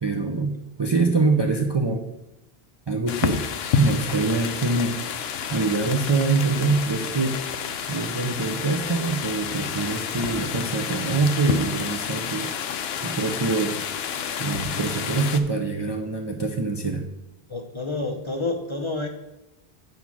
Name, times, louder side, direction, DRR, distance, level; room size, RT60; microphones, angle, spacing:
voice 1, 0.0-2.0 2.9-3.5 3.8-5.0 5.5-7.4 7.9-12.5 13.0-13.8 14.4-17.1, right 3 dB, 35° right, 2 dB, 0.5 m, -24 dB
sound 1, 3.1-15.4, left 8 dB, 75° left, 0.8 m, -30 dB
voice 2, 17.5-19.1, left 3 dB, 35° left, 4 dB, 0.6 m, -29 dB
8.2 x 4.3 x 6.0 m, 0.95 s
omnidirectional pair, 1.1 m